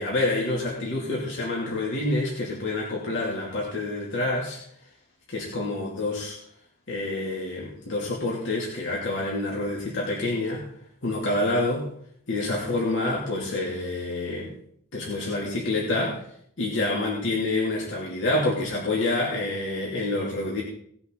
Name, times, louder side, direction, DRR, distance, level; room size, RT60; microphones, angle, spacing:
voice 1, 0.0-4.6 5.3-6.4 6.9-10.6 11.0-11.9 12.3-14.5 14.9-16.2 16.6-20.6, left 2 dB, 55° left, -3 dB, 2.7 m, -27 dB
18.5 x 7.9 x 4.0 m, 0.67 s
head